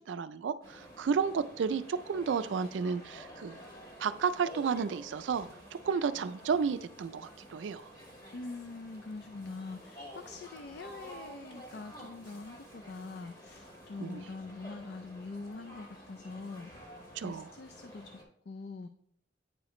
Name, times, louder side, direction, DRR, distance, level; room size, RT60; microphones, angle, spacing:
voice 1, 0.0-3.6 4.0-7.9 14.0-14.2 17.2-17.5, right 6 dB, 85° right, 12 dB, 0.4 m, -32 dB
sound 1, 0.6-18.2, equal, 25° left, 1.7 m, -50 dB
voice 2, 8.3-17.0 17.2-18.9, left 3 dB, 65° left, 8 dB, 0.4 m, -44 dB
8.9 x 4.9 x 3.0 m, 0.69 s
head